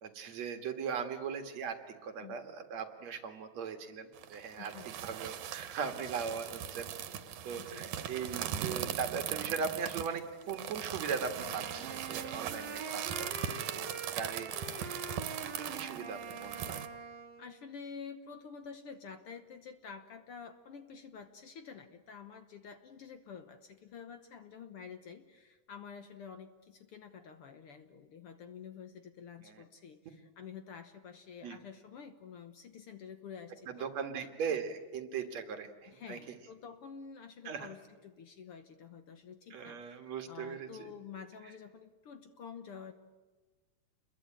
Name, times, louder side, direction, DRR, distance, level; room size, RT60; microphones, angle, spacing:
voice 1, 0.0-6.9 7.4-13.9 14.1-15.3 15.6-16.8 29.4-29.6 31.4-31.6 33.7-36.2 37.4-37.7 39.5-40.9, right 6 dB, 65° right, 6 dB, 3.0 m, -39 dB
sound 1, 4.2-16.9, right 10 dB, 90° right, 2.6 m, -40 dB
voice 2, 4.6-5.0 7.5-7.8 17.4-34.6 35.9-40.0 40.3-42.9, left 6 dB, 60° left, 8 dB, 1.7 m, -49 dB
Wind instrument woodwind instrument, 11.3-17.5, right 4 dB, 40° right, 3.1 m, -44 dB
28.5 x 22.0 x 8.9 m, 1.3 s
omnidirectional pair, 3.4 m